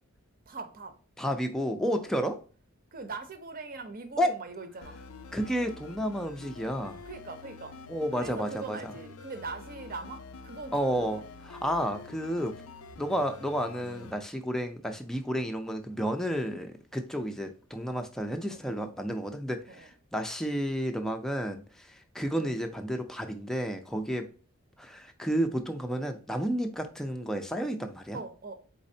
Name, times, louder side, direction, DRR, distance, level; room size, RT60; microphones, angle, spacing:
voice 1, 0.5-1.0 1.9-2.1 2.9-5.0 7.1-7.8 8.1-11.2 18.5-18.8 19.7-19.9 23.9-24.2 28.1-28.6, right 3 dB, 40° right, 0.7 m, -41 dB
voice 2, 1.2-2.4 4.2-4.4 5.3-7.0 7.9-8.8 10.7-11.2 11.5-12.5 13.0-24.3 24.8-28.2, equal, ahead, 0.5 m, -31 dB
sound 1, 4.8-14.1, left 4 dB, 80° left, 0.5 m, -47 dB
4.2 x 4.1 x 2.7 m
head